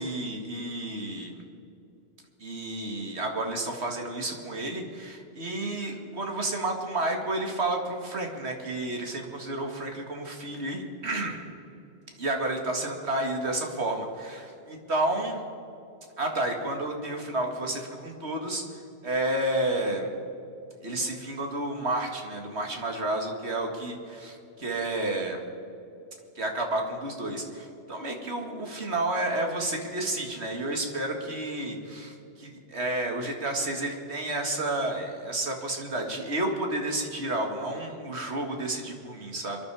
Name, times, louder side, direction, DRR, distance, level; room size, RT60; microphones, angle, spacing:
voice 1, 0.0-1.4 2.4-11.4 12.2-15.4 16.2-18.6 19.0-20.1 20.8-25.4 26.4-39.6, right 2 dB, 75° right, 2 dB, 2.3 m, -31 dB
25.5 x 11.5 x 4.9 m, 2.7 s
omnidirectional pair, 1.1 m